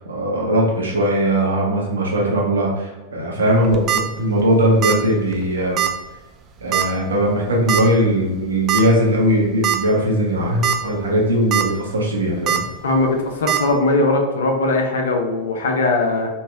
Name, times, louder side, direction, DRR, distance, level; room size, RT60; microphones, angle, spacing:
voice 1, 0.0-5.8 6.6-12.6, equal, 70° right, -2 dB, 0.9 m, -19 dB
sound 1, 3.6-4.0 4.8-5.1 5.3-5.4 5.8-5.9 6.7-7.0 7.7-7.8 8.7-8.8 9.3-9.4 9.6-9.8 10.4-10.8 11.2-11.6 12.5-12.6 13.5-13.6, right 10 dB, 30° right, 0.3 m, -20 dB
voice 2, 12.8-16.3, left 2 dB, 65° left, 2 dB, 0.6 m, -19 dB
3.1 x 2.7 x 3.5 m, 1.1 s
figure-of-eight pair, 90°, 0 cm